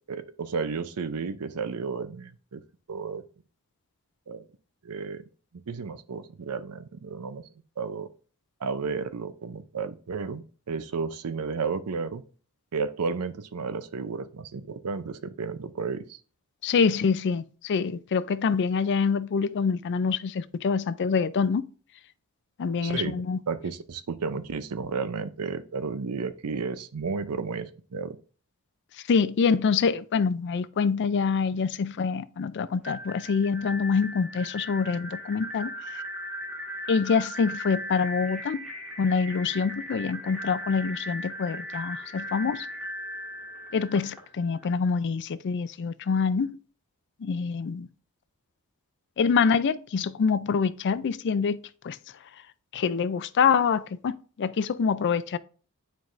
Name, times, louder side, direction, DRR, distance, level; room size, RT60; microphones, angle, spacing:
voice 1, 0.1-2.6 2.9-3.2 4.3-4.4 4.8-5.2 5.5-7.4 7.8-8.1 8.6-12.2 12.7-16.2 22.8-23.2 23.5-28.2, right 5 dB, 80° right, 0.6 m, -32 dB
voice 2, 16.6-21.7 22.6-23.4 29.1-36.0 36.9-38.7 39.0-42.7 43.7-46.6 47.2-47.9 49.2-52.0 52.7-55.4, left 5 dB, 55° left, 0.4 m, -26 dB
sound 1, 32.8-44.6, equal, 5° right, 1.6 m, -38 dB
9.4 x 4.6 x 2.5 m
head